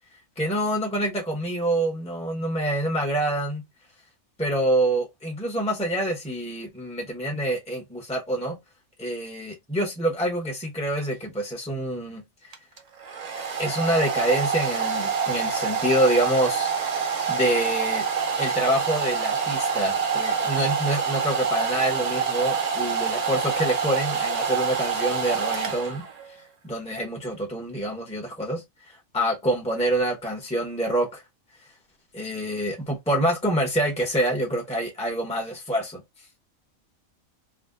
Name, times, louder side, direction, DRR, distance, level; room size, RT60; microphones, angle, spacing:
voice 1, 0.4-3.6 4.4-8.6 9.0-12.5 13.6-16.7 17.3-18.0 18.4-26.0 26.6-31.2 32.1-36.0, right 1 dB, 10° left, 0.4 m, -26 dB
Domestic sounds home sounds, 12.5-26.3, right 6 dB, 65° right, 0.4 m, -26 dB
2.5 x 2.0 x 3.5 m
omnidirectional pair, 1.4 m